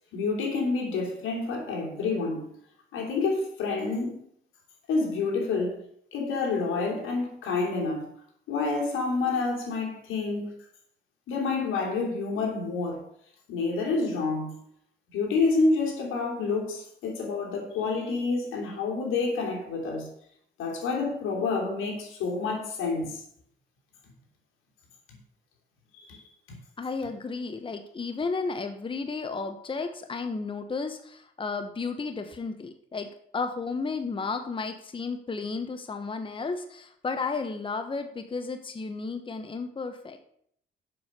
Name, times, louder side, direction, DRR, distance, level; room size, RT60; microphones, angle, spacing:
voice 1, 0.1-2.5 2.9-4.2 4.9-5.8 6.1-8.1 8.5-10.5 11.3-13.0 13.5-14.6 15.1-20.1 20.6-23.2 25.9-26.2, left 3 dB, 85° left, 3.1 m, -28 dB
voice 2, 26.8-40.2, left 4 dB, 25° left, 0.9 m, -33 dB
7.7 x 6.3 x 6.8 m
cardioid pair, 90°, 20 cm